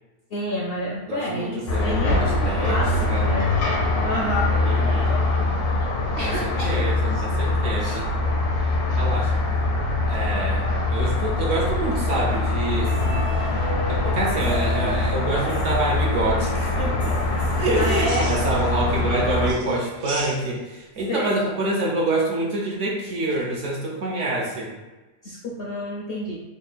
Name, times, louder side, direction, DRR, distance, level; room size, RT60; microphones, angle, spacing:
voice 1, 0.3-3.5 4.0-4.5 6.2-7.4 7.8-8.0 17.8-18.3 21.1-21.4 25.2-26.4, left 1 dB, 60° left, -5 dB, 0.6 m, -29 dB
voice 2, 1.1-3.4 4.6-5.1 6.2-8.1 9.0-9.4 10.1-13.2 13.9-24.7, right 2 dB, 65° right, -1 dB, 0.8 m, -27 dB
sound 1, 1.7-19.5, left 2 dB, 80° left, 1.3 m, -23 dB
sound 2, 12.7-19.0, equal, 40° right, 0.5 m, -38 dB
sound 3, 17.7-19.0 19.4-20.8 23.3-23.7, right 3 dB, 90° right, 1.2 m, -39 dB
3.6 x 2.3 x 4.0 m, 1.2 s
omnidirectional pair, 1.6 m